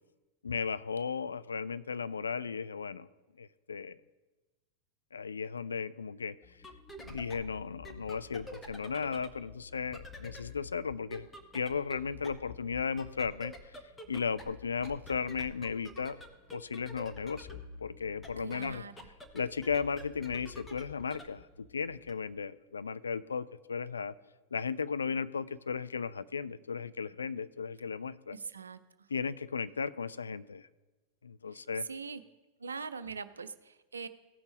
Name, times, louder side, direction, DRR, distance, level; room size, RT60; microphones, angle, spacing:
voice 1, 0.4-3.1 3.4-4.0 5.1-6.4 7.0-11.3 11.5-13.5 14.1-16.2 16.5-18.8 19.3-24.1 24.5-28.4 29.1-30.7 31.2-31.9, left 5 dB, 75° left, 15 dB, 0.3 m, -35 dB
sound 1, 6.4-22.1, left 2 dB, 10° left, 1.0 m, -49 dB
voice 2, 18.4-19.1 28.3-28.8 31.5-31.6 31.9-32.2 32.6-34.1, right 5 dB, 75° right, 13 dB, 0.5 m, -42 dB
16.5 x 6.0 x 3.4 m, 1.2 s
figure-of-eight pair, 90°, 0 cm